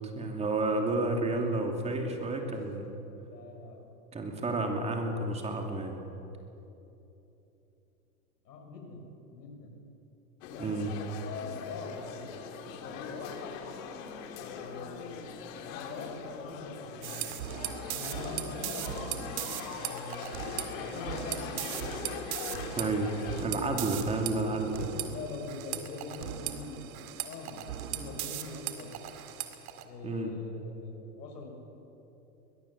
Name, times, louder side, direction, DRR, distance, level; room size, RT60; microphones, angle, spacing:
voice 1, 0.1-2.9 4.1-6.0 10.6-10.9 22.8-23.1 23.4-24.9 30.0-30.3, right 2 dB, 15° right, 3 dB, 2.7 m, -31 dB
voice 2, 3.3-3.8 8.4-9.7 10.5-10.6 11.2-12.4 12.7-13.5 14.3-15.1 15.6-17.3 17.8-20.3 20.7-21.8 24.2-28.9 29.8-31.5, left 3 dB, 75° left, 2 dB, 6.3 m, -43 dB
sound 1, 10.4-23.5, left 6 dB, 50° left, 2.6 m, -41 dB
sound 2, 17.0-29.8, right 11 dB, 60° right, 2.3 m, -38 dB
21.5 x 21.0 x 7.4 m, 3.0 s
hypercardioid pair, 135°, 49 cm